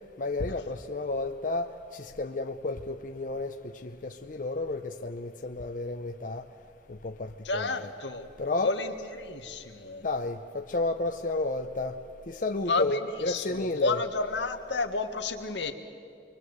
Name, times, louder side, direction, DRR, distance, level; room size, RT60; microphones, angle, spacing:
voice 1, 0.2-6.5 6.9-7.8 8.4-8.7 10.0-12.0 12.3-14.0, left 2 dB, 50° left, 5 dB, 0.7 m, -32 dB
voice 2, 7.4-8.3 8.6-10.1 12.7-15.7, left 3 dB, 85° left, 6 dB, 1.7 m, -31 dB
26.5 x 23.0 x 8.0 m, 2.4 s
head